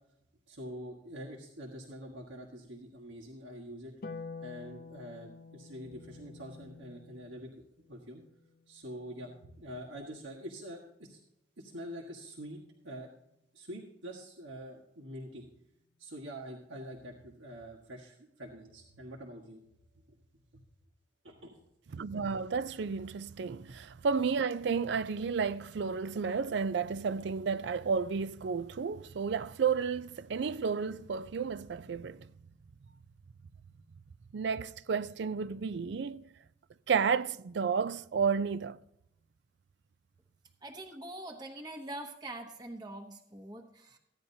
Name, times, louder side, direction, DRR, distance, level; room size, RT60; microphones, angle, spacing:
voice 1, 0.5-3.9 4.4-7.5 7.9-8.2 8.7-9.3 9.6-11.2 11.6-13.1 13.5-15.4 16.0-19.6 19.9-20.0 21.2-21.6, equal, 85° right, 1.5 m, -45 dB
Harp, 4.0-10.5 12.2-13.2, left 4 dB, 50° left, 0.6 m, -50 dB
voice 2, 21.9-32.3 34.3-36.2 36.9-38.8, right 5 dB, 65° right, 0.4 m, -32 dB
voice 3, 40.6-44.0, right 1 dB, 20° right, 1.0 m, -44 dB
15.5 x 10.0 x 2.7 m
head